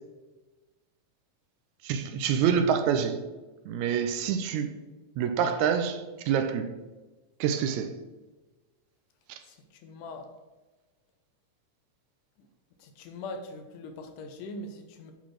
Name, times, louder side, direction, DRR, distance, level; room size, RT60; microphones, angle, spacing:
voice 1, 1.8-3.2 3.7-4.7 5.2-6.7 7.4-8.0 9.3-9.4, right 7 dB, 80° right, 1.8 m, -26 dB
voice 2, 9.8-10.3 12.4-12.5 12.8-15.1, left 2 dB, 80° left, 2.4 m, -41 dB
8.4 x 4.0 x 6.1 m
omnidirectional pair, 3.7 m